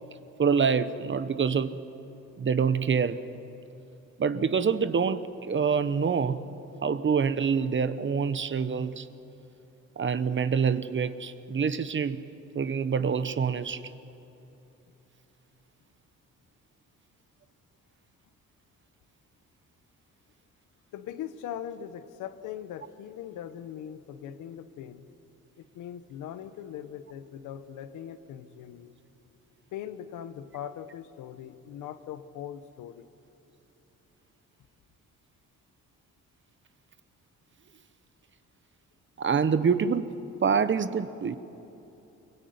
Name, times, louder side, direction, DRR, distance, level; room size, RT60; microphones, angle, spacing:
voice 1, 0.4-1.8 2.4-3.2 4.2-6.4 6.8-9.1 10.0-12.2 12.5-13.8 39.2-40.1 40.4-41.4, right 6 dB, 40° right, 12 dB, 1.1 m, -26 dB
voice 2, 20.9-25.1 25.6-28.9 29.7-33.1, left 10 dB, 90° left, 12 dB, 1.2 m, -40 dB
25.0 x 22.5 x 9.6 m, 3.0 s
cardioid pair, 90°, 30 cm